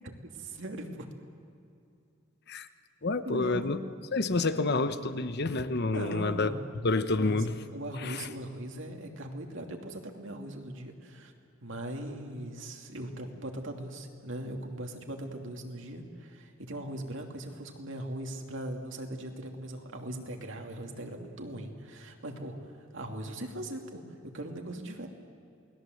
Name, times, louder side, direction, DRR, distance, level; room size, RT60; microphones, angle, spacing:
voice 1, 0.0-1.1 3.2-3.7 5.8-6.7 7.1-7.4 7.7-11.3 11.6-25.1, right 1 dB, 65° right, 3 dB, 2.7 m, -40 dB
voice 2, 3.0-3.8 4.1-6.5 6.8-7.6 8.0-8.3, left 3 dB, 55° left, 11 dB, 1.0 m, -28 dB
28.5 x 20.0 x 7.9 m, 2.6 s
head